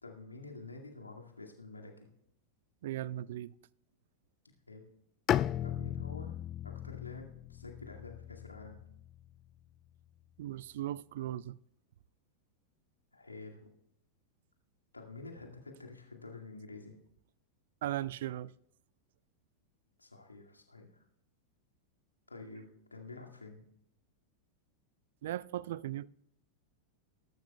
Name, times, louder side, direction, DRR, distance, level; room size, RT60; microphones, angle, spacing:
voice 1, 0.0-2.1 4.7-4.8 5.6-6.4 6.6-8.8 13.1-13.7 14.9-16.9 20.0-21.0 22.3-23.6, left 3 dB, 80° left, 2.1 m, -49 dB
voice 2, 2.8-3.5 10.4-11.6 17.8-18.5 25.2-26.1, right 13 dB, 55° right, 0.3 m, -37 dB
Bowed string instrument, 5.3-9.2, left 11 dB, 30° left, 0.3 m, -36 dB
20.5 x 12.0 x 2.3 m
figure-of-eight pair, 90°, 0 cm